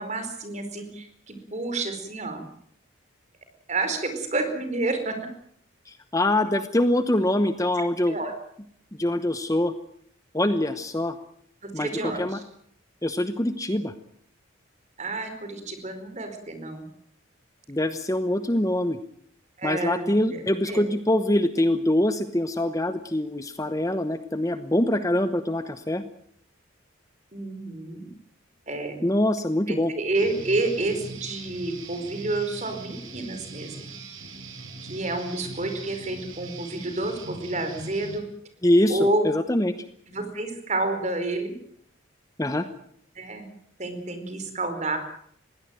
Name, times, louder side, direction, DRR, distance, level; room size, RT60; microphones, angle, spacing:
voice 1, 0.0-2.5 3.7-5.2 8.1-8.3 11.7-12.4 15.0-16.8 19.6-20.8 27.3-28.1 28.7-29.0 29.7-33.8 34.8-38.2 38.9-39.2 40.1-41.5 43.1-43.5 43.8-45.0, right 2 dB, 35° right, 8 dB, 4.7 m, -29 dB
voice 2, 5.9-8.2 9.0-9.7 10.3-11.2 11.7-12.4 13.0-13.9 17.7-19.0 19.6-26.0 29.0-29.9 38.6-39.7 42.4-42.7, left 1 dB, 15° left, 10 dB, 0.9 m, -24 dB
Guitar, 30.1-38.2, right 3 dB, 85° right, 5.2 m, -41 dB
21.5 x 17.0 x 9.2 m, 0.65 s
head